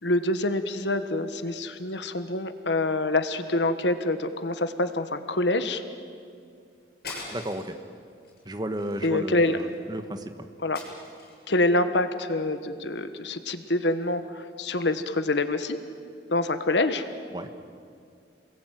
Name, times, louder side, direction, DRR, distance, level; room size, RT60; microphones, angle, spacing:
voice 1, 0.0-5.8 9.0-9.6 10.6-10.8 11.5-15.8 16.3-17.0, left 2 dB, 85° left, 10 dB, 1.4 m, -26 dB
sound 1, 7.0-7.8 8.2-8.4 8.8-9.7 10.7-11.5, left 3 dB, 55° left, 7.5 m, -41 dB
voice 2, 7.3-7.7 8.4-10.5 17.3-17.5, right 1 dB, 25° right, 7 dB, 1.4 m, -33 dB
28.5 x 21.0 x 9.3 m, 2.3 s
head